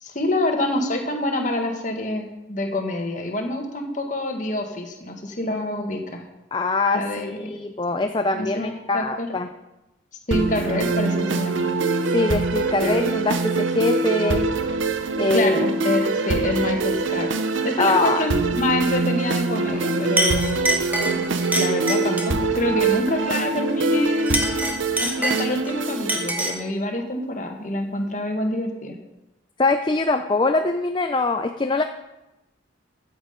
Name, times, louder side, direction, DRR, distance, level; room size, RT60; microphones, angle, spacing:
voice 1, 0.0-6.3 6.9-7.5 8.3-9.3 10.3-11.7 12.8-13.0 15.3-17.3 17.6-21.2 21.6-24.5 25.0-28.9, left 1 dB, 40° left, 3 dB, 1.6 m, -26 dB
voice 2, 6.5-9.5 12.1-14.5 15.2-15.5 17.8-18.3 29.6-31.8, left 3 dB, 25° left, 6 dB, 0.4 m, -23 dB
sound 1, 10.3-26.3, right 3 dB, 85° right, 0.7 m, -24 dB
Chink clink, 19.7-19.8 20.2-22.4 24.1-25.7 26.1-26.7, right 1 dB, 10° right, 1.1 m, -25 dB
14.5 x 7.5 x 5.1 m, 0.97 s
head